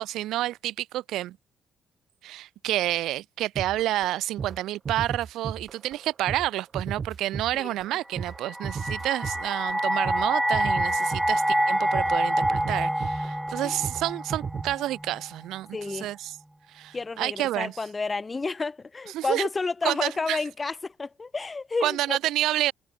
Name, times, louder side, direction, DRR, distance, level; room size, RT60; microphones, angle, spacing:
voice 1, 0.0-1.4 2.2-16.4 16.7-17.8 19.1-19.5 19.8-20.4 21.8-22.7, right 14 dB, 85° right, 0.9 m, -29 dB
sound 1, 3.6-4.1 4.4-4.6 4.8-6.0 6.3-14.0 14.3-14.8, right 6 dB, 45° right, 4.5 m, -35 dB
sound 2, 8.2-15.3, equal, 5° right, 0.4 m, -27 dB
voice 2, 15.7-16.1 16.9-22.2, left 4 dB, 25° left, 2.1 m, -30 dB
cardioid pair, 90°, 0 cm